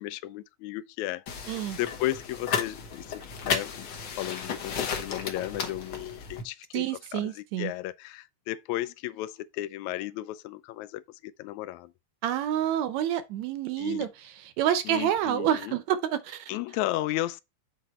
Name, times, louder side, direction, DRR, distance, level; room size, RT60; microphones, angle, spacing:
voice 1, 0.0-3.9 4.2-6.9 7.1-11.9 13.8-14.1 14.9-15.8 16.5-17.4, left 15 dB, 80° left, 1.9 m, -34 dB
sound 1, 1.3-6.4, left 6 dB, 60° left, 1.3 m, -34 dB
voice 2, 1.5-1.8 6.7-7.7 12.2-16.5, right 10 dB, 75° right, 1.9 m, -28 dB
7.7 x 4.5 x 4.2 m
omnidirectional pair, 3.5 m